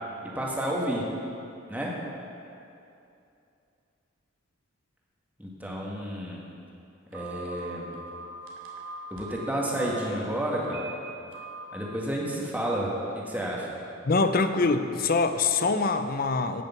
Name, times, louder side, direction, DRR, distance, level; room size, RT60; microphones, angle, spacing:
voice 1, 0.2-1.0 1.7-1.9 5.4-6.4 7.1-8.0 9.1-10.9 11.7-13.7, right 1 dB, 10° right, -4 dB, 1.9 m, -31 dB
Telephone, 7.1-10.1 10.6-10.9 11.3-11.6, right 4 dB, 80° right, 2.3 m, -41 dB
voice 2, 14.0-16.6, left 3 dB, 45° left, 9 dB, 0.6 m, -24 dB
16.5 x 6.7 x 5.9 m, 2.7 s
head